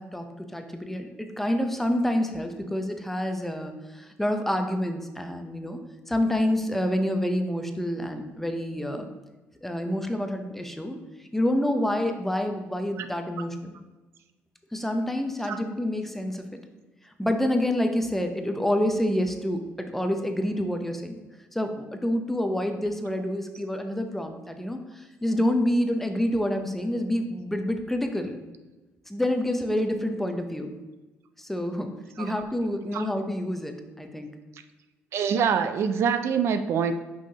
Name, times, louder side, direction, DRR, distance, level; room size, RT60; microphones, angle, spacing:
voice 1, 0.0-5.8 6.1-9.1 9.6-11.0 11.3-13.8 14.7-16.6 17.2-21.2 21.5-28.4 29.1-30.8 31.4-31.9 32.2-34.3, left 1 dB, 5° left, 5 dB, 0.6 m, -28 dB
voice 2, 35.1-36.9, right 7 dB, 65° right, 9 dB, 0.4 m, -24 dB
6.0 x 5.5 x 2.8 m, 1.2 s
cardioid pair, 115°, 5 cm